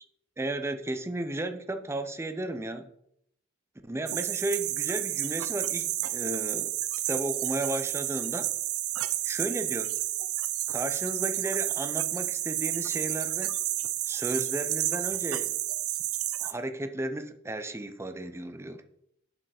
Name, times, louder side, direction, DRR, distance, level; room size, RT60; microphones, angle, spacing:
voice 1, 0.4-2.9 3.8-6.7 7.1-8.5 9.2-9.9 10.7-13.6 14.1-15.6 16.4-18.8, right 1 dB, 10° right, 8 dB, 0.5 m, -34 dB
sound 1, 4.1-16.5, right 14 dB, 90° right, 0.5 m, -31 dB
7.4 x 4.6 x 4.9 m, 0.74 s
head